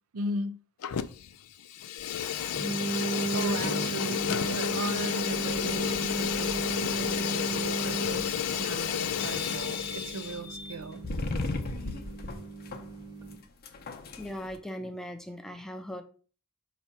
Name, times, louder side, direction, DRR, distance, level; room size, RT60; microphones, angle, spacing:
voice 1, 0.1-0.6 3.3-11.0, right 2 dB, 70° right, 0.6 m, -37 dB
Fire, 0.8-1.3 1.6-10.4, left 9 dB, 85° left, 0.5 m, -31 dB
sound 1, 2.5-13.4, right 3 dB, 20° right, 1.0 m, -36 dB
sound 2, 5.3-14.6, left 2 dB, 45° left, 0.8 m, -39 dB
voice 2, 14.2-16.0, equal, ahead, 0.6 m, -39 dB
5.6 x 3.1 x 5.5 m
head